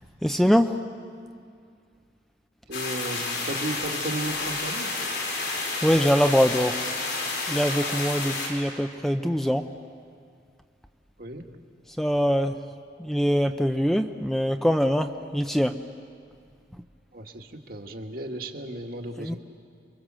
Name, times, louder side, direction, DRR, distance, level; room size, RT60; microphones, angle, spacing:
voice 1, 0.2-0.8 5.8-6.7 7.5-9.7 12.0-12.5 13.0-15.7 19.2-19.3, equal, ahead, 6 dB, 0.6 m, -23 dB
sound 1, 2.7-8.5, left 3 dB, 80° left, 6.0 m, -30 dB
voice 2, 2.7-4.9 11.2-11.4 17.1-19.4, right 1 dB, 55° right, 3 dB, 1.9 m, -34 dB
29.5 x 24.0 x 7.6 m, 2.2 s
head